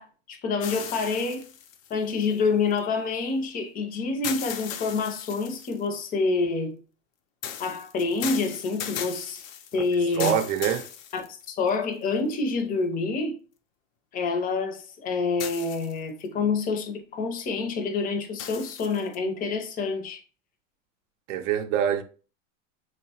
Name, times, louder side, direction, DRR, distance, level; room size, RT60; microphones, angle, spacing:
voice 1, 0.0-1.5 1.9-6.8 7.6-9.4 9.7-10.4 11.1-13.4 14.1-20.2, left 4 dB, 25° left, 0.4 m, -27 dB
sound 1, 0.6-2.8 4.2-5.9 7.4-11.7 12.3-12.4 15.4-16.2 18.4-19.2, left 9 dB, 85° left, 0.5 m, -37 dB
voice 2, 10.2-10.9 21.3-22.0, right 9 dB, 75° right, 0.5 m, -24 dB
2.9 x 2.1 x 2.7 m
supercardioid pair, 115°, 39 cm